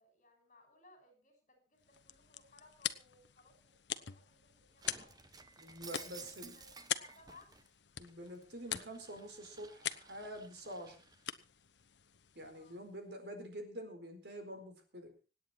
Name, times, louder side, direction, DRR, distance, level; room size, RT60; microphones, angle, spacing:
voice 1, 0.0-5.2 6.0-7.5 12.5-12.8, left 3 dB, 40° left, 5 dB, 6.5 m, -64 dB
sound 1, 1.8-13.0, left 10 dB, 75° left, 1.0 m, -45 dB
Shatter, 4.8-7.7 8.1-11.2, right 4 dB, 20° right, 1.0 m, -55 dB
voice 2, 5.6-6.6 8.0-11.0 12.3-15.3, equal, 65° right, 5 dB, 4.4 m, -47 dB
26.0 x 9.3 x 4.4 m, 0.34 s
head